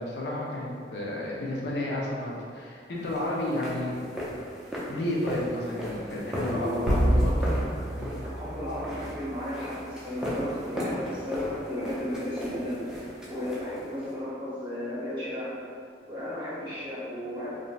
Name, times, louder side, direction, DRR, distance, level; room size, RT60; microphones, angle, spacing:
voice 1, 0.0-3.9 4.9-7.6 8.0-8.1, left 1 dB, 65° left, -4 dB, 0.5 m, -31 dB
sound 1, 3.0-14.2, equal, 5° right, 0.4 m, -37 dB
sound 2, 6.9-9.5, right 1 dB, 70° right, 0.4 m, -27 dB
voice 2, 8.3-12.8 13.3-15.5 16.1-17.5, left 1 dB, 30° right, -9 dB, 0.9 m, -34 dB
3.1 x 2.5 x 2.3 m, 2.2 s
head